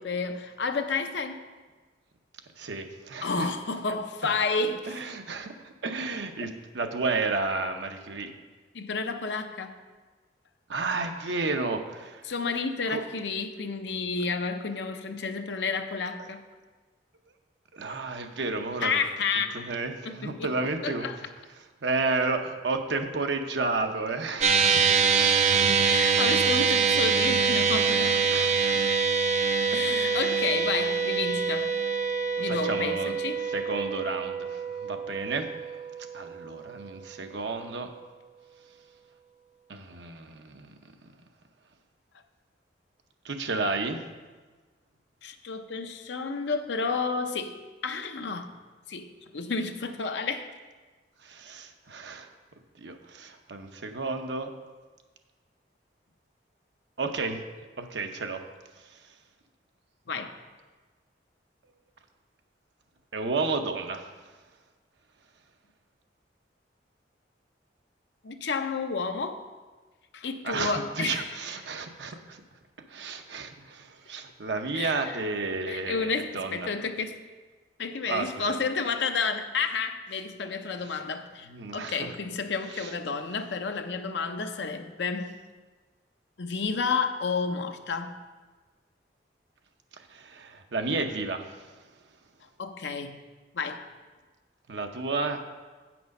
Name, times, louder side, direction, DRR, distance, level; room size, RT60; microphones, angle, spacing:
voice 1, 0.0-1.4 3.2-5.0 8.7-9.7 12.3-16.4 18.8-19.7 20.1-20.5 20.8-21.2 25.8-28.1 29.7-31.7 32.4-33.4 45.2-48.5 48.9-50.5 60.1-60.3 68.2-69.4 70.1-71.3 74.7-74.9 75.7-77.1 77.8-81.5 81.7-85.3 86.4-88.2 92.6-93.2 93.5-93.9, left 4 dB, 75° left, 7 dB, 0.6 m, -31 dB
voice 2, 2.6-3.5 3.9-4.0 4.9-8.3 10.7-12.3 12.9-13.0 16.2-16.3 17.7-19.0 19.5-21.1 21.6-25.9 27.9-28.8 29.7-30.3 32.4-35.8 36.1-37.9 39.7-40.7 43.2-44.0 51.2-52.3 52.8-54.5 57.0-57.4 57.8-58.4 58.8-59.1 63.1-64.1 70.4-72.4 72.9-76.7 78.1-78.6 80.8-81.0 81.5-82.1 82.7-82.9 90.0-91.8 94.7-95.4, right 3 dB, 80° right, 5 dB, 0.8 m, -32 dB
sound 1, 24.4-36.9, right 5 dB, 40° right, 0.5 m, -25 dB
8.0 x 6.0 x 5.2 m, 1.3 s
head